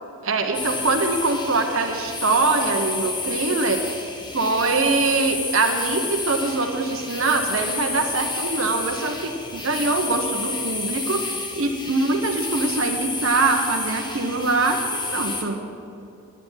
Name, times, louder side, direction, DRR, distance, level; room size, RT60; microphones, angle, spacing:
voice 1, 0.2-3.8 4.3-15.6, right 3 dB, 65° right, 4 dB, 1.0 m, -23 dB
sound 1, 0.5-15.4, left 3 dB, 20° left, 1.1 m, -30 dB
10.5 x 10.0 x 9.0 m, 2.7 s
head